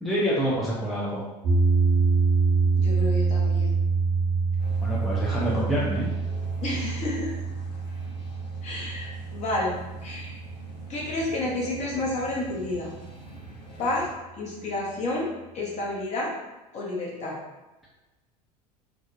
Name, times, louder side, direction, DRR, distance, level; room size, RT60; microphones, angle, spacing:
voice 1, 0.0-1.2 4.8-6.1, equal, ahead, -7 dB, 0.5 m, -27 dB
sound 1, 1.4-11.7, right 4 dB, 55° right, 0.7 m, -26 dB
voice 2, 2.8-3.8 6.6-7.3 8.6-10.3 10.9-12.9 13.8-14.1 14.4-16.3 16.7-17.4, left 2 dB, 35° left, -3 dB, 0.8 m, -30 dB
sound 2, 4.6-14.1, right 1 dB, 85° left, 0.5 m, -45 dB
2.6 x 2.1 x 2.5 m, 1.1 s
figure-of-eight pair, 75°, 20 cm